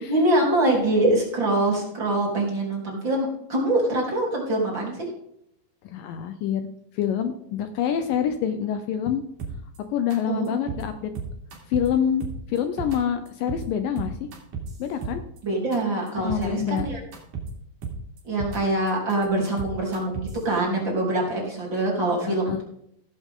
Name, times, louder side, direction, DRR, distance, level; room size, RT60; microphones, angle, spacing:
voice 1, 0.1-5.0 10.3-10.7 15.4-17.0 18.2-22.6, right 1 dB, 30° right, -3 dB, 3.9 m, -24 dB
voice 2, 5.8-6.6 6.9-9.2 9.9-11.1 11.7-12.2 12.5-14.1 14.8-15.2 16.2-16.9 22.2-22.6, left 8 dB, 75° left, 8 dB, 2.2 m, -26 dB
sound 1, 9.4-9.8 10.1-10.2 10.5-10.8 11.2-11.9 12.2-13.0 13.3-13.6 14.0-15.4 15.7-15.8 16.1-16.4 16.8-17.5 17.8-18.6 18.9-20.4, right 6 dB, 60° right, 3.8 m, -33 dB
16.5 x 8.2 x 3.7 m, 0.73 s
omnidirectional pair, 4.3 m